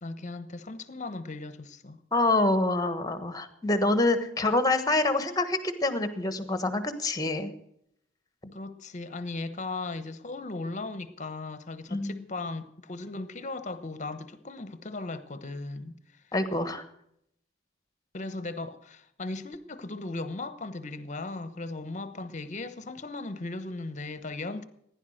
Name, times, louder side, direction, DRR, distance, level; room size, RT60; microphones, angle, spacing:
voice 1, 0.0-2.0 8.4-15.9 18.1-24.7, left 3 dB, 40° left, 1.0 m, -37 dB
voice 2, 2.1-7.5 11.9-12.2 16.3-16.8, left 2 dB, 20° left, 1.3 m, -26 dB
15.5 x 10.5 x 6.4 m
head